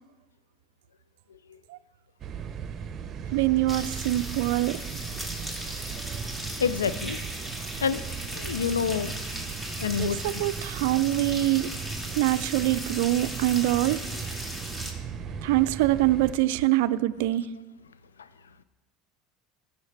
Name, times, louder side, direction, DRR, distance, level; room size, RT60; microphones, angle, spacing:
sound 1, 2.2-16.3, right 6 dB, 40° right, 0.8 m, -37 dB
voice 1, 3.3-4.8 10.0-11.7 12.2-14.1 15.4-17.5, right 16 dB, 70° right, 15 dB, 0.4 m, -24 dB
sound 2, 3.7-14.9, equal, 15° left, 2.4 m, -38 dB
voice 2, 6.6-7.2 7.8-9.1 9.8-10.2 18.2-18.3, left 6 dB, 90° left, 14 dB, 0.4 m, -28 dB
15.5 x 6.9 x 3.3 m, 1.2 s
hypercardioid pair, 80°, 0 cm